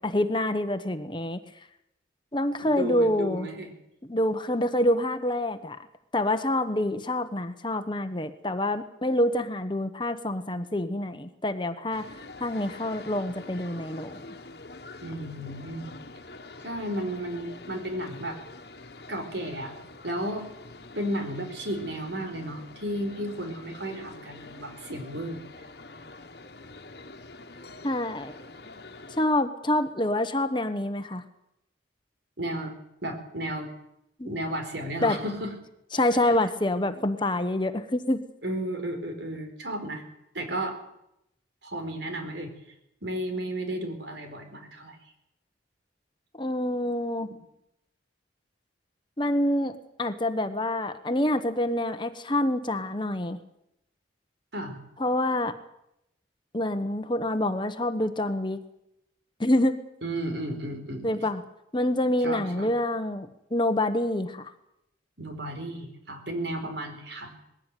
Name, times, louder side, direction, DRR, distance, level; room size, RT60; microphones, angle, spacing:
voice 1, 0.0-1.4 2.3-3.5 4.1-5.8 6.1-12.1 12.4-14.2 27.8-28.4 29.2-31.2 34.2-34.3 35.0-35.2 35.9-38.2 46.4-47.3 49.2-53.4 55.0-55.5 56.5-58.6 59.4-59.8 61.0-61.4 61.7-64.5, left 1 dB, 25° left, 9 dB, 1.2 m, -26 dB
voice 2, 2.6-3.7 15.0-15.9 16.6-18.4 19.1-19.7 20.0-20.5 20.9-25.4 32.4-32.7 33.0-33.7 34.2-35.5 35.9-36.0 36.9-37.0 38.4-40.0 40.3-40.8 41.6-42.5 43.0-45.0 54.5-54.8 60.0-61.2 62.2-62.7 65.2-67.3, right 1 dB, 75° right, 6 dB, 4.7 m, -33 dB
sound 1, 11.9-29.2, left 2 dB, 60° left, 1.6 m, -45 dB
20.5 x 16.0 x 9.3 m, 0.81 s
head